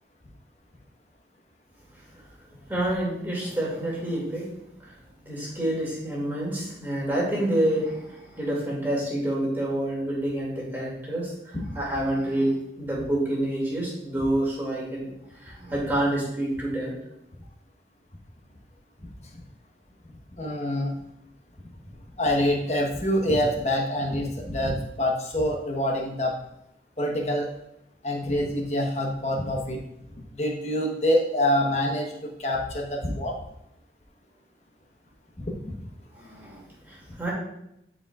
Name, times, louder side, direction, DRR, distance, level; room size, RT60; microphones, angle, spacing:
voice 1, 2.7-4.5 5.2-15.1 15.4-16.9 36.1-37.3, right 1 dB, 10° right, -5 dB, 2.3 m, -28 dB
voice 2, 20.4-20.9 22.2-26.3 27.0-27.5 28.0-29.8 30.4-32.1 32.4-33.3 35.4-35.7, left 1 dB, 40° left, 0 dB, 1.1 m, -26 dB
11.0 x 5.0 x 2.4 m, 0.82 s
head